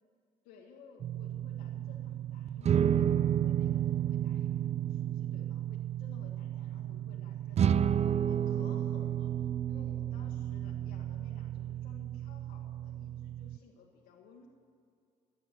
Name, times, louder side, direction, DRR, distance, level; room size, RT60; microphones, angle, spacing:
voice 1, 0.4-7.8 8.3-14.5, left 4 dB, 90° left, -3 dB, 1.5 m, -57 dB
sound 1, 1.0-13.6, right 10 dB, 45° right, 0.4 m, -32 dB
14.5 x 6.6 x 9.2 m, 2.4 s
supercardioid pair, 70°, 16 cm